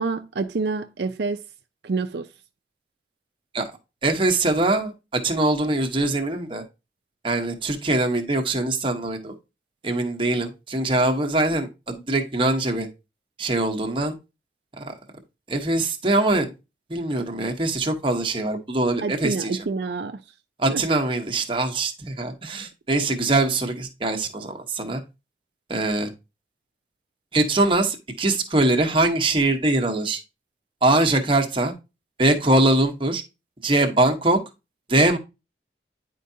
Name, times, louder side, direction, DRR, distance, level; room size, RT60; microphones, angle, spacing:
voice 1, 0.0-1.4 1.8-2.3 19.0-20.2 20.7-20.8, right 4 dB, 70° right, 0.5 m, -27 dB
voice 2, 4.0-6.6 7.2-9.3 9.8-12.9 13.4-14.2 14.8-14.9 15.5-16.5 16.9-19.5 20.6-25.0 25.7-26.1 27.3-30.2 30.8-31.7 32.2-33.2 33.6-34.4 34.9-35.2, right 2 dB, 30° right, 1.0 m, -22 dB
9.9 x 4.6 x 2.7 m
head